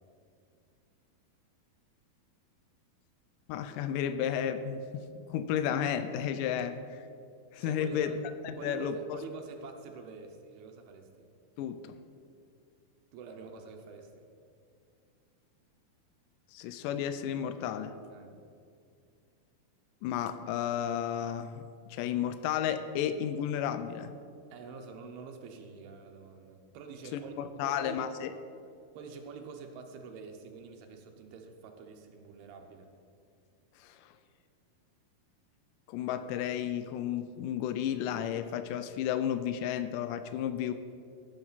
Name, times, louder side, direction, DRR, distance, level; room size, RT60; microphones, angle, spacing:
voice 1, 3.5-7.0 7.5-8.1 8.4-9.2 11.6-12.0 16.5-18.0 20.0-21.6 21.9-24.1 27.1-28.3 33.8-34.0 35.9-40.7, left 9 dB, 85° left, 10 dB, 1.9 m, -33 dB
voice 2, 7.6-8.2 8.6-11.3 13.1-14.1 18.1-18.4 24.5-28.1 28.9-32.9, right 5 dB, 90° right, 4 dB, 3.0 m, -46 dB
16.5 x 7.6 x 4.1 m, 2.3 s
omnidirectional pair, 4.4 m